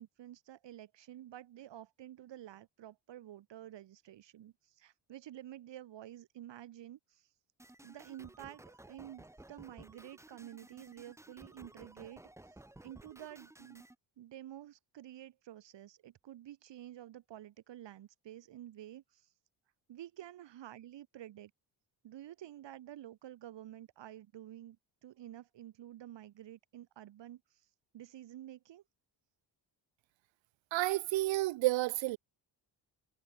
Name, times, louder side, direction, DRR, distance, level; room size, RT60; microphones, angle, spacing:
voice 1, 0.0-7.3 7.8-13.8 14.2-19.3 19.9-21.5 22.0-24.8 25.0-28.8, right 12 dB, 70° right, 4.9 m, -50 dB
sound 1, 7.6-14.0, right 1 dB, 5° right, 2.0 m, -56 dB
voice 2, 30.7-32.2, right 18 dB, 85° right, 0.8 m, -30 dB
cardioid pair, 150°, 44 cm